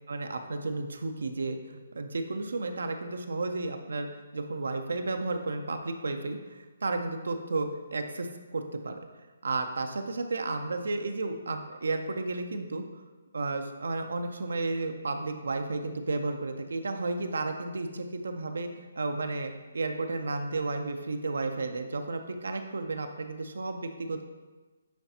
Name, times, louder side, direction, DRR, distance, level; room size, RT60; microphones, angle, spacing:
voice 1, 0.1-9.0 9.4-13.0 13.3-18.7 19.0-24.2, right 3 dB, 70° right, 6 dB, 0.5 m, -33 dB
9.1 x 3.9 x 2.8 m, 1.3 s
figure-of-eight pair, 140°, 0 cm